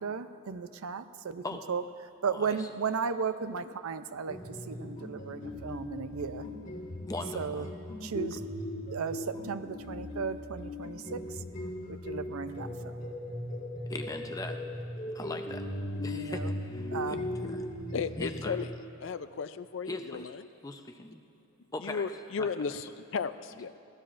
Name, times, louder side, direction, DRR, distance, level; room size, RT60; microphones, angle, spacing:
voice 1, 0.0-1.4 1.7-1.8 2.2-4.4 4.7-6.4 7.4-7.6 8.0-8.4 8.9-11.2 11.9-13.0 16.1-16.3 16.9-17.3, right 6 dB, 90° right, 12 dB, 0.5 m, -35 dB
voice 2, 2.3-2.7 7.1-7.7 8.3-8.4 13.9-14.6 15.1-15.7 16.0-17.6 18.2-18.6 19.9-20.3 20.6-21.2 21.7-22.1 22.4-22.8, left 2 dB, 15° left, 5 dB, 0.6 m, -40 dB
sound 1, 4.3-18.6, left 1 dB, 40° left, 1.5 m, -38 dB
voice 3, 17.9-18.7 19.0-20.4 21.8-23.8, left 5 dB, 60° left, 13 dB, 0.4 m, -35 dB
22.5 x 16.5 x 2.5 m, 2.7 s
head